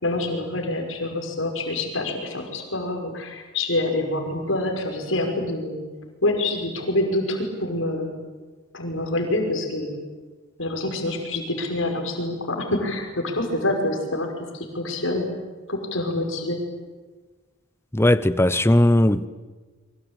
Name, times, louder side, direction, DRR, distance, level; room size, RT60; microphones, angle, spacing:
voice 1, 0.0-5.8 6.2-8.1 8.7-9.9 10.6-14.3 14.5-15.3 15.7-16.6, left 2 dB, 85° left, 5.7 m, -26 dB
voice 2, 17.9-19.3, left 1 dB, 15° left, 0.8 m, -18 dB
26.5 x 24.0 x 8.9 m
head